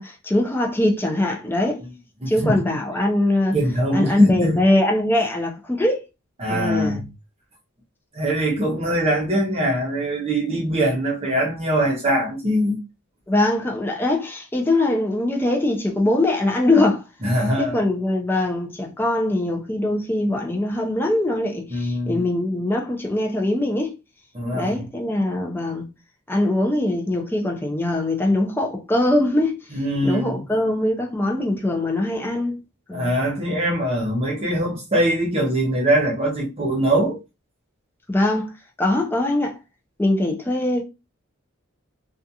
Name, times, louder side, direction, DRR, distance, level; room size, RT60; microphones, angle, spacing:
voice 1, 0.0-1.8 2.3-3.6 3.9-6.0 6.5-7.0 13.3-17.0 17.6-23.9 24.5-25.9 26.3-29.6 30.0-32.6 32.9-33.2 38.1-38.5 38.8-39.6 40.0-40.8, left 1 dB, 10° left, 0.4 m, -22 dB
voice 2, 2.2-2.6 3.5-4.6 6.4-7.0 8.1-12.8 17.2-17.8 21.7-22.2 24.3-24.8 29.7-30.4 32.9-37.2, right 1 dB, 30° right, 0.7 m, -22 dB
2.4 x 2.3 x 2.7 m
head